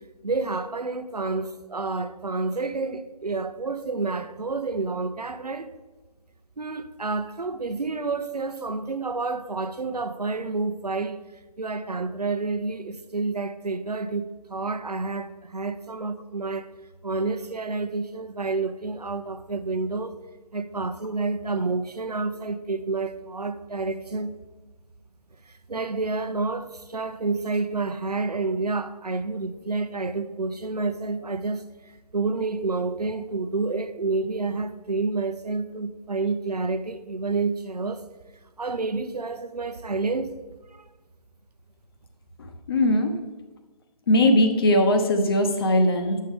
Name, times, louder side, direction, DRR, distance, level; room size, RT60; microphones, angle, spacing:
voice 1, 0.2-5.7 6.6-11.2 11.6-16.7 17.0-20.2 20.5-24.3 25.5-31.6 32.1-38.1 38.6-40.3 40.7-40.9, right 3 dB, 85° right, 0.7 m, -29 dB
voice 2, 42.4-43.1 44.1-46.2, left 1 dB, 40° left, 1.0 m, -20 dB
9.1 x 6.5 x 3.7 m
figure-of-eight pair, 145°, 20 cm